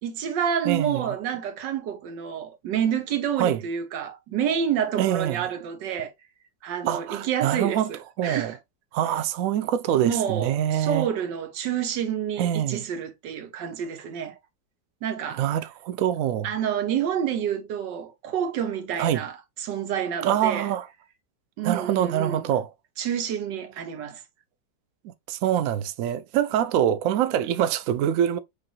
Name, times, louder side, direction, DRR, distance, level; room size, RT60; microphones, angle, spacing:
voice 1, 0.0-6.1 6.6-8.6 10.0-14.4 15.0-15.4 16.4-20.7 21.6-22.5 23.0-24.2, right 9 dB, 70° right, 1.5 m, -28 dB
voice 2, 0.6-1.1 3.4-3.6 5.0-5.4 6.9-7.9 8.2-8.6 8.9-11.1 12.4-12.8 15.4-16.5 19.0-19.2 20.2-20.9 21.6-22.7 25.3-28.4, right 10 dB, 90° right, 0.7 m, -25 dB
6.6 x 2.5 x 2.8 m
omnidirectional pair, 2.0 m